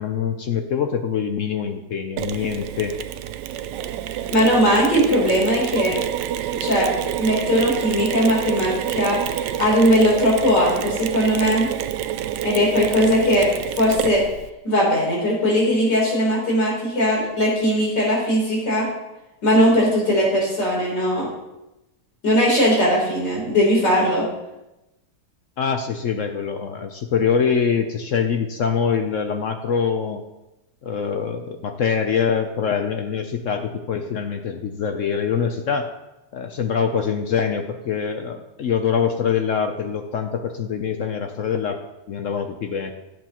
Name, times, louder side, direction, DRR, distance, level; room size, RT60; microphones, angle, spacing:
voice 1, 0.0-3.0 25.6-30.2 30.8-35.9 36.3-41.8 42.1-42.9, left 6 dB, 60° left, 6 dB, 0.8 m, -24 dB
Mechanisms, 2.2-14.5, right 11 dB, 85° right, 1.2 m, -28 dB
voice 2, 4.3-6.0 6.6-6.9 7.2-11.7 12.4-14.2 14.6-18.9 19.4-21.3 22.2-24.3, equal, 85° left, -3 dB, 4.3 m, -19 dB
17.0 x 7.7 x 3.0 m, 0.96 s
omnidirectional pair, 1.8 m